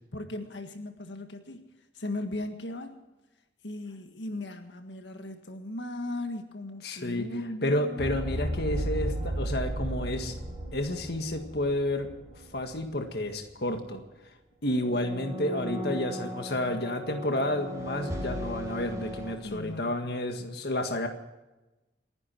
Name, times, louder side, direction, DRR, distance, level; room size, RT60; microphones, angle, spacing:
voice 1, 0.1-3.0 3.6-8.2 19.4-20.0, left 2 dB, 80° left, 5 dB, 1.7 m, -37 dB
voice 2, 6.8-7.2 7.6-10.3 10.7-12.1 12.5-14.0 14.6-21.1, left 1 dB, 60° left, 5 dB, 1.8 m, -30 dB
sound 1, 8.0-12.8 13.1-13.3 14.8-19.4, equal, 15° right, 4.4 m, -35 dB
28.5 x 11.0 x 4.5 m, 1.0 s
head